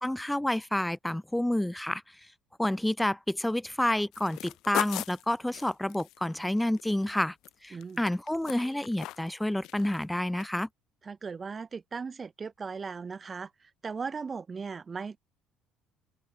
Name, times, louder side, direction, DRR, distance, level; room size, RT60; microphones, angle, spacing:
voice 1, 0.0-2.0 2.6-7.3 7.6-10.7, left 1 dB, 5° left, 1.0 m, -29 dB
sound 1, 4.1-7.5 7.8-9.3 9.6-10.0 10.4-10.5, left 15 dB, 55° left, 2.1 m, -38 dB
voice 2, 7.7-8.0 11.0-15.2, right 5 dB, 30° right, 3.5 m, -38 dB
figure-of-eight pair, 55°, 0 cm